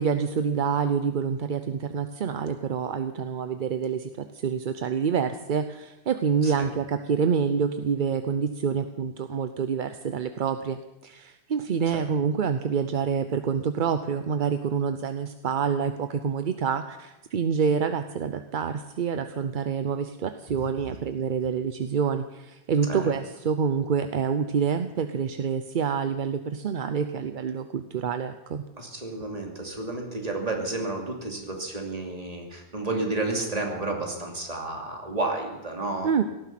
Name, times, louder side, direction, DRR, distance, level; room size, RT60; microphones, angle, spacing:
voice 1, 0.0-28.6 36.0-36.2, right 6 dB, 50° right, 9 dB, 0.7 m, -27 dB
voice 2, 28.8-36.1, right 2 dB, 30° right, 1 dB, 2.7 m, -31 dB
18.0 x 14.0 x 5.9 m, 0.98 s
omnidirectional pair, 1.2 m